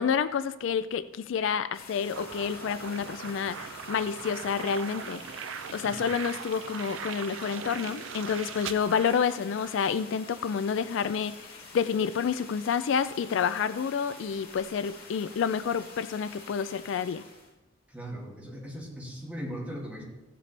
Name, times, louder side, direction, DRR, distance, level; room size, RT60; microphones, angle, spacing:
voice 1, 0.0-5.2 5.7-17.2, left 6 dB, 70° left, 14 dB, 0.3 m, -29 dB
sound 1, 1.7-17.5, left 3 dB, 50° left, 2.2 m, -48 dB
sound 2, 2.1-9.9, right 7 dB, 75° right, 0.5 m, -40 dB
voice 2, 17.9-20.0, equal, 5° right, -4 dB, 2.3 m, -39 dB
15.0 x 7.5 x 3.3 m, 1.0 s
head